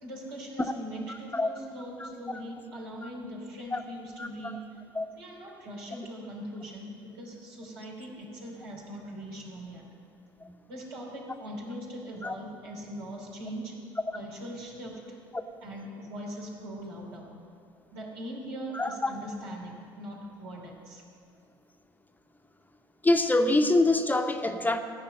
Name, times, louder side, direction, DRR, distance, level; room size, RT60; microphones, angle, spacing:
voice 1, 0.0-4.8 5.1-9.9 10.7-13.8 14.1-15.2 15.6-17.3 17.9-21.0, right 1 dB, 85° right, -3 dB, 2.9 m, -41 dB
voice 2, 1.1-1.5 2.0-2.1 3.0-3.1 3.7-3.8 4.2-4.3 4.9-5.1 10.4-10.5 12.2-12.4 15.3-15.4 18.7-19.1 23.0-24.8, left 2 dB, 15° left, 6 dB, 0.8 m, -25 dB
14.5 x 5.7 x 8.8 m, 2.4 s
hypercardioid pair, 70°, 13 cm